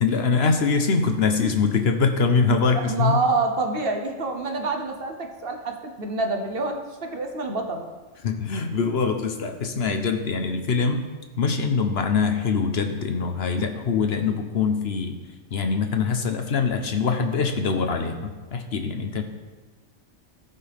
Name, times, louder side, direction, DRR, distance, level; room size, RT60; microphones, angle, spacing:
voice 1, 0.0-3.2 8.2-11.0 11.4-15.2 15.5-19.2, left 5 dB, 55° left, 6 dB, 1.0 m, -23 dB
voice 2, 2.7-7.9, right 3 dB, 50° right, 5 dB, 1.0 m, -27 dB
16.5 x 5.7 x 3.4 m, 1.3 s
omnidirectional pair, 1.4 m